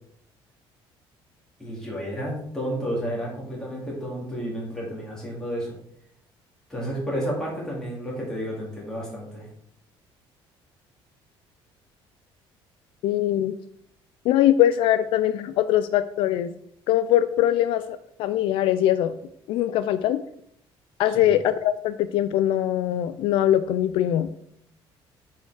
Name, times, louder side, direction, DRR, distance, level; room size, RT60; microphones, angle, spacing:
voice 1, 1.6-5.8 6.7-9.5 21.1-21.3, equal, 5° left, -4 dB, 2.3 m, -31 dB
voice 2, 13.0-13.5 14.2-16.5 16.9-19.1 19.5-20.2 21.0-24.3, left 12 dB, 65° left, 12 dB, 0.3 m, -22 dB
7.0 x 4.4 x 4.7 m, 0.71 s
cardioid pair, 175°, 10 cm